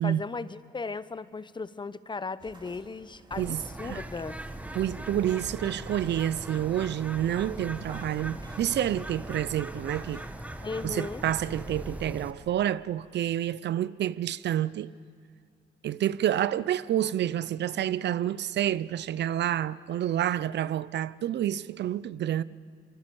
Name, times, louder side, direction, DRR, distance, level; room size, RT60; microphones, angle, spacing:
voice 1, 0.0-4.4 10.6-11.2, left 4 dB, 25° left, 0.7 m, -36 dB
sound 1, 2.4-10.5, right 2 dB, 20° right, 2.7 m, -53 dB
Bird, 3.3-12.3, right 1 dB, 5° right, 1.2 m, -40 dB
voice 2, 3.4-4.0 4.8-10.2 10.8-14.9 15.8-22.4, right 11 dB, 60° right, 0.5 m, -29 dB
23.5 x 23.0 x 7.0 m
cardioid pair, 90°, 20 cm